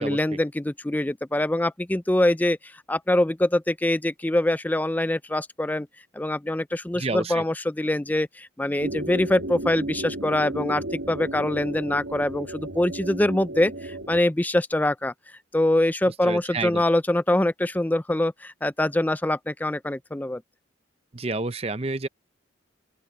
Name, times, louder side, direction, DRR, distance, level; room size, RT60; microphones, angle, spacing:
voice 1, 0.0-5.9 6.1-15.1 15.5-20.4, left 1 dB, 10° left, 0.4 m, -24 dB
voice 2, 7.0-7.4 16.2-16.8 21.1-22.1, right 3 dB, 30° right, 0.7 m, -29 dB
sound 1, 8.8-14.2, right 1 dB, 90° right, 2.4 m, -34 dB
open air
head